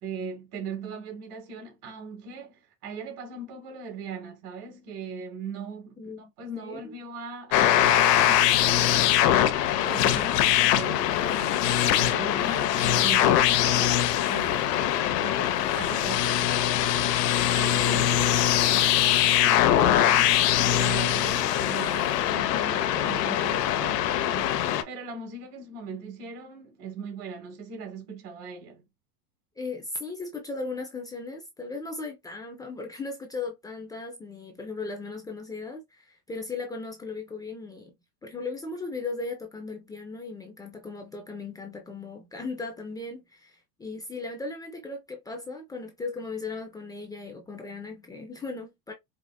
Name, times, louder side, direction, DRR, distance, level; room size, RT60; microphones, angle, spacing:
voice 1, 0.0-19.0 19.4-24.6 24.8-28.8, right 4 dB, 65° right, 1.7 m, -40 dB
voice 2, 6.0-6.9 29.6-37.9 38.2-48.9, left 3 dB, 10° left, 0.3 m, -37 dB
sound 1, 7.5-24.8, left 11 dB, 75° left, 0.8 m, -22 dB
4.9 x 2.5 x 2.2 m
supercardioid pair, 125°, 48 cm